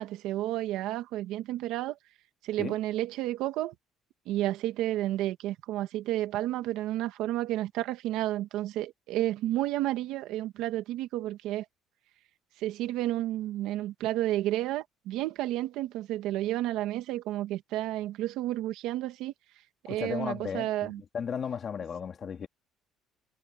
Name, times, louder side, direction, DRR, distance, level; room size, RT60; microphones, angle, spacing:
voice 1, 0.0-2.0 2.4-3.7 4.3-11.6 12.6-19.3 19.8-21.0, right 14 dB, 75° right, 2.0 m, -31 dB
voice 2, 19.9-22.5, left 7 dB, 35° left, 2.5 m, -35 dB
cardioid pair, 155°, 0 cm